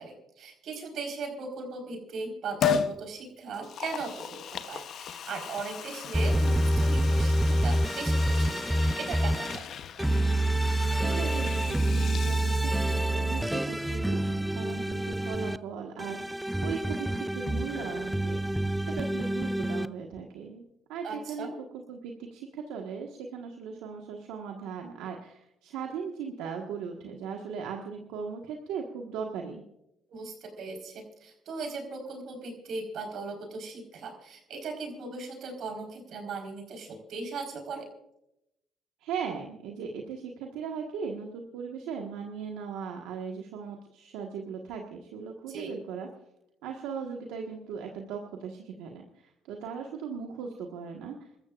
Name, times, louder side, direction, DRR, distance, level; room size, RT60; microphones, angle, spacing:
voice 1, 0.0-9.7 21.0-21.6 30.1-37.9 45.5-45.7, right 4 dB, 70° right, 3 dB, 4.4 m, -38 dB
Liquid, 2.6-3.0 3.5-13.2 13.5-13.6, left 7 dB, 65° left, 0.9 m, -36 dB
sound 1, 6.1-9.6 10.0-15.6 16.0-19.9, right 1 dB, 5° right, 0.5 m, -27 dB
voice 2, 10.8-18.4 18.8-20.6 20.9-29.6 39.0-46.1 46.6-49.0 49.5-51.2, right 6 dB, 90° right, 1 dB, 1.5 m, -38 dB
28.5 x 14.0 x 2.5 m, 0.84 s
supercardioid pair, 75°, 0 cm